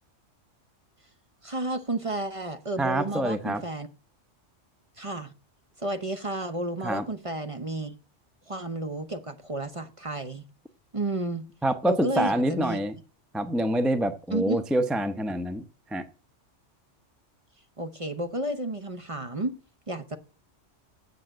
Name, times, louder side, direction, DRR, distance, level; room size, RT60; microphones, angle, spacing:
voice 1, 1.4-3.9 5.0-5.3 5.8-7.9 8.5-10.4 10.9-11.5 11.9-12.8 14.3-14.6 17.8-19.6 19.9-20.2, right 2 dB, 30° right, 8 dB, 0.8 m, -32 dB
voice 2, 2.8-3.6 6.8-7.1 11.6-13.0 13.3-15.6 15.9-16.0, right 1 dB, ahead, 9 dB, 0.5 m, -26 dB
8.0 x 7.6 x 7.6 m, 0.36 s
omnidirectional pair, 1.3 m